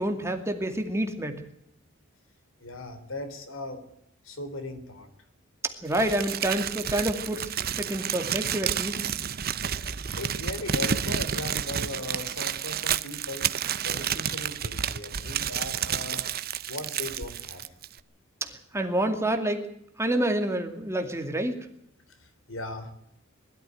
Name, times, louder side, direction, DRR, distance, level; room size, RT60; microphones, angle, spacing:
voice 1, 0.0-1.4 5.8-7.5 7.8-9.0 18.4-19.7 20.0-21.7, right 1 dB, 15° right, 5 dB, 2.3 m, -28 dB
voice 2, 2.6-3.8 4.2-5.1 10.2-13.5 13.8-16.3 16.7-17.6 22.1-22.9, left 2 dB, 75° left, 9 dB, 3.4 m, -38 dB
Crumpling crinkling, 5.9-18.0, right 8 dB, 50° right, 0.8 m, -30 dB
20.5 x 13.5 x 9.4 m, 0.75 s
head